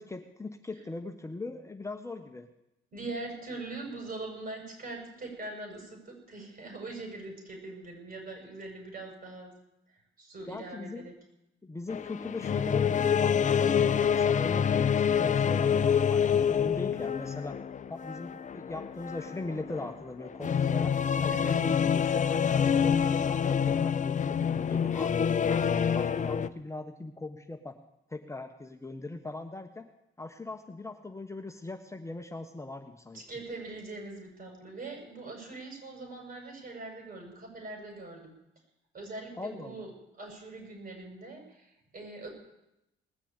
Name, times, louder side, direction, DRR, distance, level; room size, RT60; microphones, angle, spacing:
voice 1, 0.0-2.5 10.5-11.1 11.6-17.6 17.9-20.9 21.2-27.7 28.1-29.9 30.2-33.2 39.4-39.9, left 2 dB, 15° left, 5 dB, 1.2 m, -40 dB
voice 2, 2.9-9.5 10.2-11.1 21.3-21.6 33.1-38.3 38.9-39.9 40.2-42.3, right 2 dB, 45° right, 2 dB, 7.1 m, -42 dB
sound 1, 11.9-26.5, left 7 dB, 40° left, 0.7 m, -27 dB
19.5 x 7.0 x 8.9 m, 0.87 s
cardioid pair, 90°, 20 cm